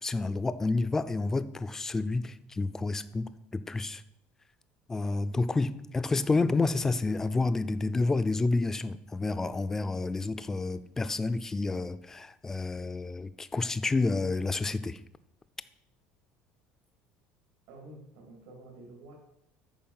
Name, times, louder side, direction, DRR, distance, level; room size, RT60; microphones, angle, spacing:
voice 1, 0.0-4.0 4.9-15.0, left 3 dB, 10° left, 0.4 m, -29 dB
voice 2, 17.7-19.1, right 2 dB, 85° right, 2.8 m, -49 dB
8.8 x 5.7 x 5.6 m
cardioid pair, 155°, 4 cm